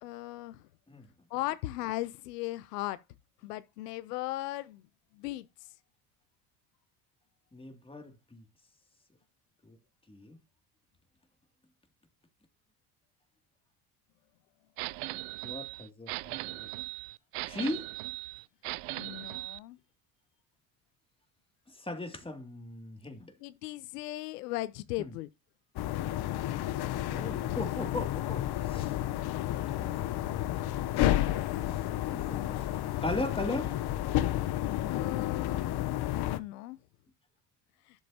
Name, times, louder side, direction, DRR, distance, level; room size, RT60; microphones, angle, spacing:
voice 1, 0.0-0.6 1.3-3.0 3.4-4.8 5.1-5.5 19.0-19.8 23.4-25.3 34.9-35.8 36.1-36.8, left 17 dB, 85° left, 0.8 m, -37 dB
voice 2, 7.5-8.4 9.6-9.8 10.1-10.4 15.4-16.7 17.5-17.9 21.7-23.3 25.0-25.1 27.1-28.9 32.1-32.6 33.0-33.8, left 2 dB, 10° left, 2.6 m, -38 dB
sound 1, 14.8-19.6, right 24 dB, 80° right, 0.6 m, -39 dB
sound 2, 25.8-36.4, left 14 dB, 55° left, 0.9 m, -31 dB
11.5 x 7.4 x 2.9 m
hypercardioid pair, 75°, 46 cm